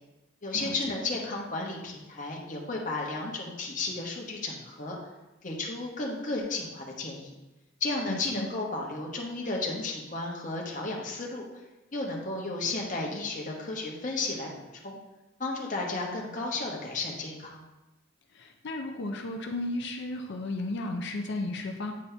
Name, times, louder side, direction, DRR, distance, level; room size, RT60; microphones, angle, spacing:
voice 1, 0.4-5.0 5.4-7.3 7.8-11.4 11.9-15.0 15.4-17.6, left 2 dB, 40° left, -1 dB, 1.1 m, -33 dB
voice 2, 8.1-8.5 18.4-21.9, left 2 dB, 60° left, 3 dB, 0.5 m, -34 dB
8.5 x 4.2 x 3.3 m, 1.0 s
head